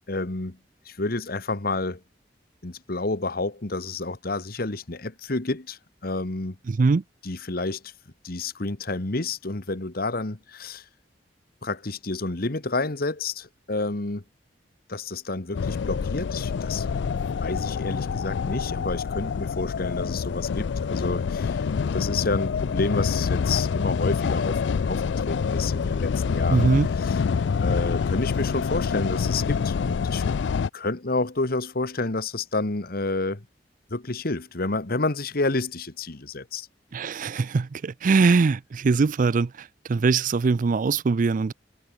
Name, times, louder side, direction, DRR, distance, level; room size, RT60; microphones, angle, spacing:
voice 1, 0.1-0.6 0.8-2.0 2.6-6.6 7.2-7.9 8.2-10.8 11.6-14.2 14.9-16.9 17.4-21.6 21.9-26.7 27.0-27.2 27.6-30.2 30.7-33.5 33.9-36.7, left 3 dB, 60° left, 1.6 m, -29 dB
voice 2, 6.7-7.0 26.5-26.9 36.9-41.5, right 4 dB, 50° right, 0.4 m, -22 dB
sound 1, 15.5-30.7, left 5 dB, 85° left, 0.4 m, -26 dB
head